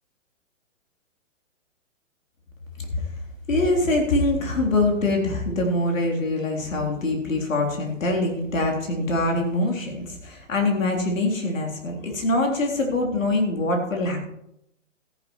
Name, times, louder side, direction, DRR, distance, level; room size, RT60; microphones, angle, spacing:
voice 1, 3.5-14.2, left 2 dB, 90° left, 1 dB, 3.7 m, -24 dB
14.0 x 10.5 x 4.6 m, 0.81 s
hypercardioid pair, 150°, 38 cm